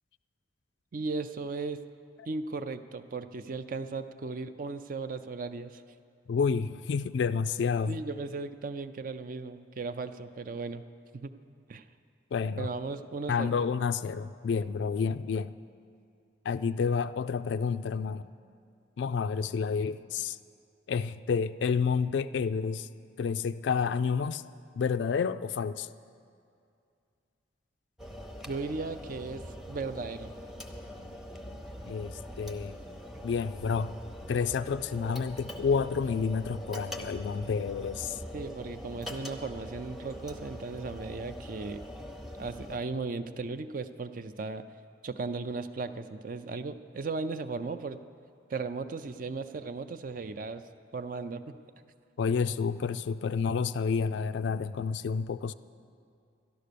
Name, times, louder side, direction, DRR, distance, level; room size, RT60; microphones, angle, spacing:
voice 1, 0.9-1.8 2.3-5.8 7.9-10.8 11.1-11.3 11.7-11.8 12.6-13.5 28.5-29.4 29.7-30.3 38.3-41.8 42.4-44.7 45.0-48.0 48.5-50.6 50.9-51.6, right 3 dB, 45° right, 11 dB, 0.4 m, -36 dB
voice 2, 6.3-8.0 12.3-12.7 13.3-15.6 16.4-18.3 19.0-20.4 20.9-22.9 23.2-24.4 24.7-25.9 31.9-32.8 33.2-34.0 34.3-38.2 52.2-55.5, left 5 dB, 70° left, 13 dB, 0.3 m, -29 dB
sound 1, 28.0-42.8, equal, ahead, 0.7 m, -43 dB
12.0 x 11.5 x 6.7 m, 2.4 s
head